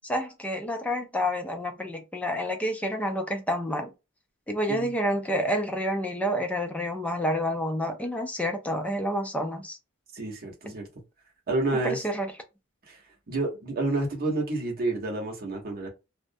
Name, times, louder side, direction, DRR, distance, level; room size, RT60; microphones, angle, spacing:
voice 1, 0.0-3.9 4.5-9.8 11.8-12.3, equal, 5° left, 0.4 m, -29 dB
voice 2, 10.1-10.9 11.5-12.0 12.9-15.9, right 2 dB, 45° right, 0.9 m, -29 dB
2.4 x 2.1 x 2.6 m
head